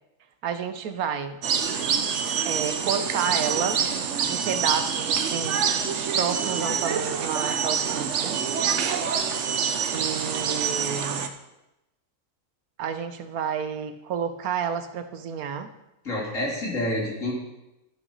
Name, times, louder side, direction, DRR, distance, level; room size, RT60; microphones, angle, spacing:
voice 1, 0.4-1.4 2.4-3.8 4.3-5.6 6.1-8.4 9.9-11.3 12.8-15.7, right 7 dB, 75° right, 9 dB, 1.3 m, -30 dB
sound 1, 1.4-11.3, right 7 dB, 55° right, 1.0 m, -26 dB
voice 2, 16.0-17.3, left 1 dB, 55° left, -4 dB, 3.4 m, -28 dB
13.5 x 5.9 x 5.4 m, 0.94 s
omnidirectional pair, 1.6 m